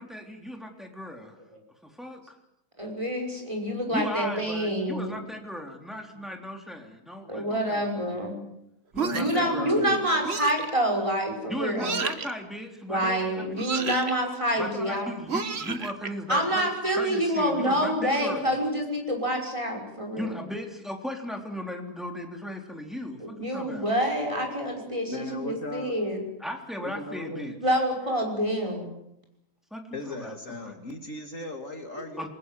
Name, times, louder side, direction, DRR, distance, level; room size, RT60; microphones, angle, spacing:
voice 1, 0.0-1.4 1.8-2.3 3.9-8.1 8.9-10.0 11.5-13.7 14.5-18.6 20.2-23.9 26.4-27.6 29.7-30.8 32.2-32.3, equal, ahead, 2 dB, 3.5 m, -37 dB
voice 2, 2.8-5.2 7.3-8.4 9.1-12.0 12.9-15.1 16.3-20.4 23.2-26.2 27.6-28.9, equal, 20° right, 2 dB, 6.0 m, -27 dB
sound 1, 8.9-9.5 10.2-10.7 11.8-12.3 13.6-14.1 15.3-16.1, right 5 dB, 40° right, 1.5 m, -31 dB
voice 3, 9.0-10.3 25.1-25.9 26.8-27.5 29.9-32.3, left 1 dB, 50° left, 5 dB, 2.8 m, -37 dB
28.0 x 21.0 x 7.8 m, 0.81 s
omnidirectional pair, 1.7 m